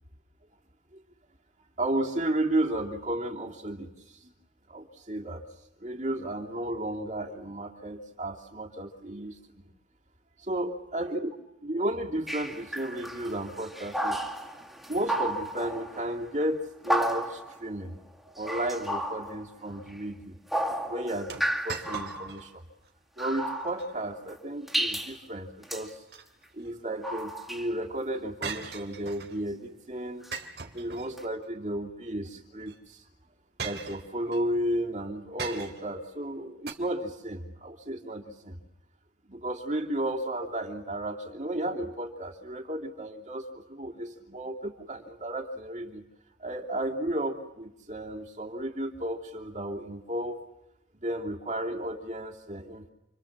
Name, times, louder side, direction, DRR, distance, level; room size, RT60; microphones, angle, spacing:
voice 1, 1.8-4.3 4.7-5.4 5.8-9.6 10.4-11.3 11.6-14.2 14.9-17.9 18.3-20.4 20.9-22.6 23.2-26.0 26.5-30.3 30.7-33.0 33.6-38.6 39.3-46.0 46.4-50.4 51.0-52.9, right 1 dB, 45° right, 0 dB, 3.0 m, -33 dB
sound 1, 12.3-16.2 16.8-17.6 18.4-20.0 20.5-22.4 23.2-24.3 24.7-25.2 25.6-25.9 27.0-27.7 30.2-30.3 31.2-31.3, right 1 dB, ahead, 2.3 m, -33 dB
sound 2, 21.3-22.5 22.8-22.9 23.6-23.9 25.8-26.7 28.4-29.4 30.3-31.5 32.6-32.8 33.6-34.4 35.4-36.0 36.7-36.8, right 5 dB, 70° right, 2.8 m, -40 dB
30.0 x 25.0 x 7.4 m, 0.86 s
head